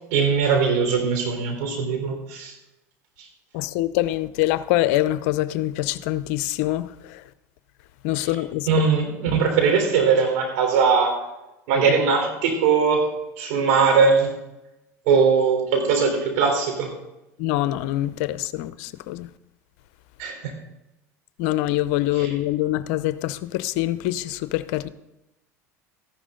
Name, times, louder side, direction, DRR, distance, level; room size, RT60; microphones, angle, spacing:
voice 1, 0.1-2.5 8.7-11.2 11.7-13.1 13.4-14.3 15.1-16.9 20.2-20.5 22.2-22.3, right 5 dB, 65° right, 3.9 m, -20 dB
voice 2, 3.5-7.2 8.0-8.7 17.4-19.3 21.4-24.9, left 15 dB, 65° left, 0.7 m, -25 dB
14.0 x 11.0 x 3.9 m
hypercardioid pair, 80°, 9 cm